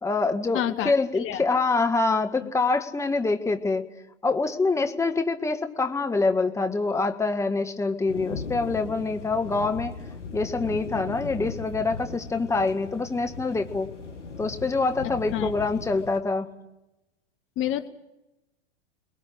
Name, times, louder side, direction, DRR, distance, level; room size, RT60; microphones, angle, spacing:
voice 1, 0.0-3.8 4.2-10.0 10.3-13.9 14.4-16.5, left 3 dB, 10° left, 6 dB, 1.6 m, -25 dB
voice 2, 0.5-1.4 15.0-15.5 17.6-17.9, left 12 dB, 35° left, 10 dB, 1.4 m, -29 dB
sound 1, 8.1-16.2, left 5 dB, 80° left, 2.3 m, -38 dB
29.5 x 21.5 x 6.4 m, 0.96 s
hypercardioid pair, 100°, 36 cm